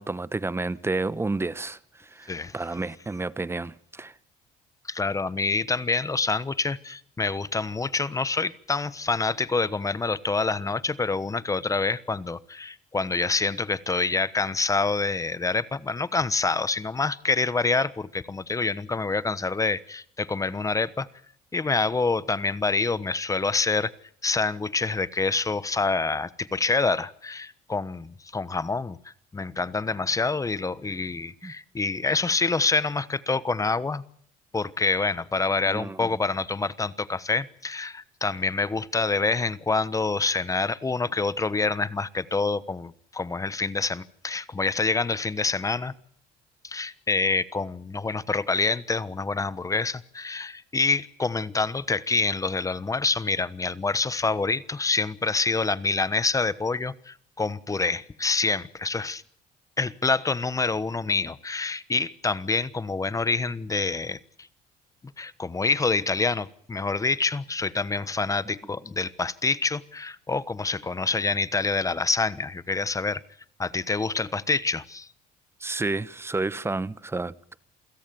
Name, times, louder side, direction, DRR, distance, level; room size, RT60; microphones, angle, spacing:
voice 1, 0.0-4.1 31.4-31.5 35.6-36.1 75.6-77.6, right 3 dB, 15° right, 0.9 m, -31 dB
voice 2, 4.9-21.1 21.5-23.9 24.2-34.0 34.5-45.9 46.6-59.2 59.8-64.2 65.2-73.2 73.6-75.1, left 3 dB, 20° left, 1.1 m, -26 dB
28.0 x 17.0 x 7.0 m
cardioid pair, 110°, 17 cm